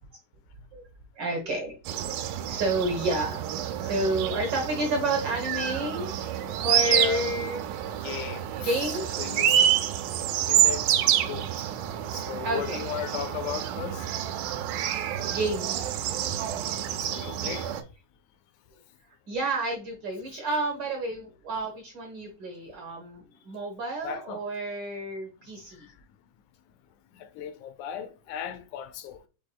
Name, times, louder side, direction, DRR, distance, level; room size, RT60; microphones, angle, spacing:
voice 1, 1.2-1.7 2.3-3.4 3.8-6.1 6.6-7.6 8.6-9.3 12.4-12.8 15.3-16.4 19.3-25.9, right 2 dB, 65° right, 1.1 m, -30 dB
sound 1, 1.9-17.8, right 10 dB, 90° right, 2.0 m, -28 dB
voice 2, 6.8-7.3 8.0-8.5 9.2-9.6 10.5-10.9 11.3-11.5 12.1-14.1 16.8-17.7 24.0-24.4 27.1-29.2, left 9 dB, 85° left, 2.0 m, -36 dB
6.3 x 3.5 x 2.2 m
omnidirectional pair, 3.5 m